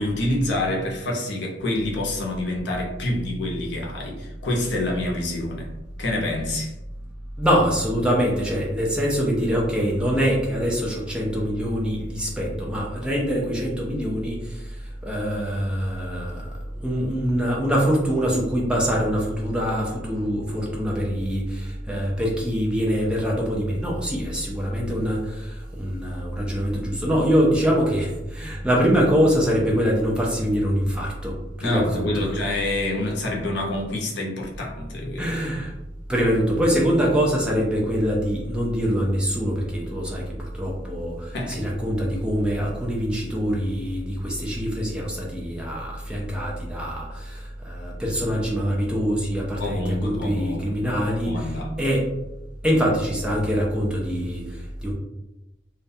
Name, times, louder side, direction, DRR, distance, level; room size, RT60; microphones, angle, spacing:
voice 1, 0.0-5.7 6.0-6.7 31.6-35.3 41.3-41.6 49.6-51.9, left 1 dB, 70° left, -1 dB, 0.6 m, -27 dB
voice 2, 7.4-32.3 35.2-35.7 36.1-52.1 52.6-54.9, equal, 5° right, -3 dB, 0.4 m, -24 dB
2.3 x 2.1 x 2.6 m, 0.93 s
head